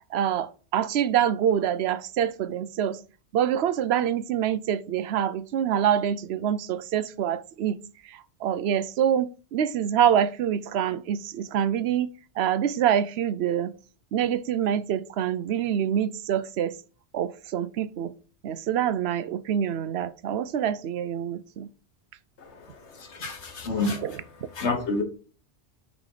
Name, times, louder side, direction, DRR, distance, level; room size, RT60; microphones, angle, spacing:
voice 1, 0.1-3.0 3.3-7.8 8.1-13.7 14.1-16.7 17.1-18.1 18.4-21.7 23.6-24.2, right 9 dB, 70° right, 0.8 m, -26 dB
voice 2, 23.0-24.0 24.6-25.0, left 3 dB, 80° left, 1.6 m, -28 dB
5.9 x 5.0 x 4.9 m
omnidirectional pair, 1.1 m